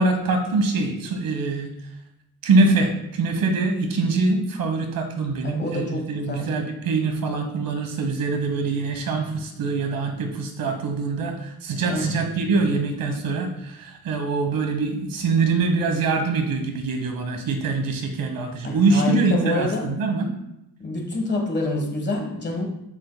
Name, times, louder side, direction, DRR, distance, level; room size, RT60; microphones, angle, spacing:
voice 1, 0.0-1.7 2.4-20.3, right 3 dB, 70° right, 5 dB, 1.3 m, -24 dB
voice 2, 5.4-6.5 11.9-12.2 18.6-20.0 20.8-22.7, left 2 dB, 30° left, 1 dB, 1.4 m, -27 dB
9.4 x 7.3 x 2.2 m, 0.85 s
cardioid pair, 155°, 35 cm